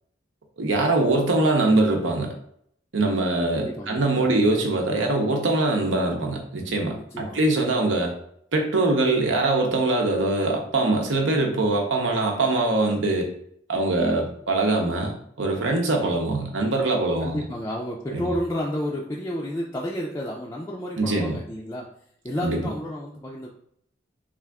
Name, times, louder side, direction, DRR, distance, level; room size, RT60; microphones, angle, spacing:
voice 1, 0.6-2.3 2.9-8.1 8.5-13.3 13.7-15.1 15.4-17.4 18.1-18.2 21.0-21.4 22.4-22.6, right 2 dB, 90° right, 2 dB, 0.8 m, -23 dB
voice 2, 3.6-4.4 6.9-7.5 17.2-21.9 22.2-23.5, equal, 15° left, -3 dB, 0.3 m, -31 dB
3.4 x 2.5 x 3.5 m, 0.68 s
head